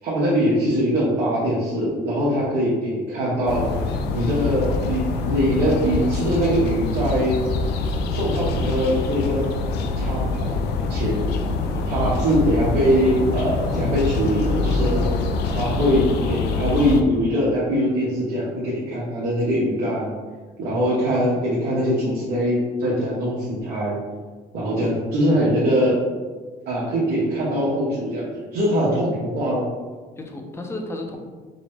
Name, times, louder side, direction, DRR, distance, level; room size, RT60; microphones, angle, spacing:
voice 1, 0.0-3.7 4.1-7.4 8.1-9.5 9.9-10.6 10.9-11.2 11.8-15.1 15.5-20.2 20.6-24.0 24.5-26.0 26.7-29.7, equal, 70° right, -7 dB, 1.1 m, -22 dB
sound 1, 3.5-17.0, left 3 dB, 80° left, 0.4 m, -25 dB
voice 2, 11.7-12.0 24.8-24.9 30.2-31.2, left 2 dB, 15° left, 2 dB, 0.6 m, -34 dB
5.1 x 2.1 x 3.3 m, 1.4 s
cardioid pair, 110°, 17 cm